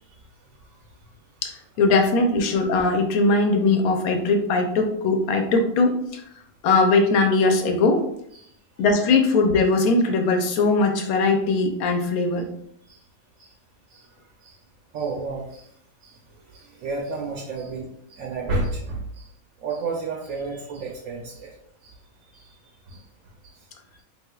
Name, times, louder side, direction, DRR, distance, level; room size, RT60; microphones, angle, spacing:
voice 1, 1.4-6.2 6.6-8.0 8.8-12.5, left 3 dB, 85° left, 4 dB, 1.0 m, -20 dB
voice 2, 14.9-15.6 16.0-16.2 16.5-19.2 19.6-21.5 21.8-21.9 22.3-22.4 22.9-23.0, right 3 dB, 75° right, -2 dB, 1.0 m, -31 dB
3.3 x 2.9 x 2.2 m, 0.72 s
omnidirectional pair, 1.5 m